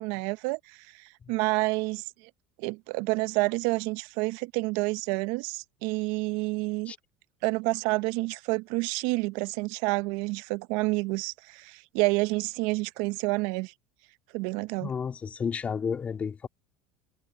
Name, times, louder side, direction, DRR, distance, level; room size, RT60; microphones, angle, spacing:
voice 1, 0.0-2.0 2.6-6.9 7.4-13.7 14.3-14.9, right 25 dB, 70° right, 0.6 m, -29 dB
voice 2, 14.8-16.5, left 6 dB, 30° left, 2.0 m, -31 dB
supercardioid pair, 105°, 5 cm